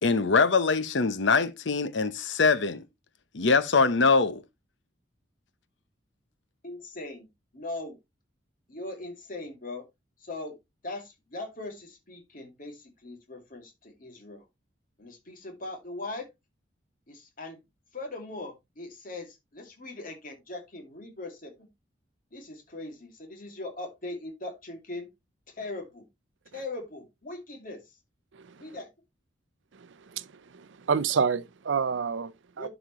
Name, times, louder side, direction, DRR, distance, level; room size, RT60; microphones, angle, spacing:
voice 1, 0.0-2.8 3.3-4.4, left 4 dB, 80° left, 0.8 m, -23 dB
voice 2, 6.6-7.3 7.5-8.0 8.7-9.8 10.2-10.5 10.8-14.4 15.0-16.3 17.1-17.6 17.9-21.7 22.3-25.1 25.6-26.0 26.5-27.8 28.6-28.9 32.6-32.7, left 2 dB, 50° left, 2.3 m, -40 dB
voice 3, 29.8-30.3 30.5-32.7, right 6 dB, 90° right, 0.5 m, -29 dB
11.5 x 5.1 x 3.0 m
head